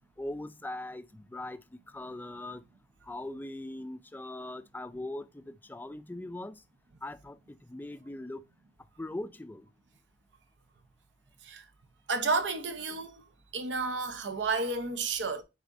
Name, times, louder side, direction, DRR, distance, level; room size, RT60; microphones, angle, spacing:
voice 1, 0.2-1.6 1.9-2.6 3.1-6.6 7.0-7.4 7.7-8.4 9.0-9.6, left 1 dB, 10° left, 0.4 m, -40 dB
voice 2, 12.1-13.2 13.5-15.4, right 4 dB, 85° right, 0.8 m, -31 dB
9.3 x 4.2 x 2.6 m
head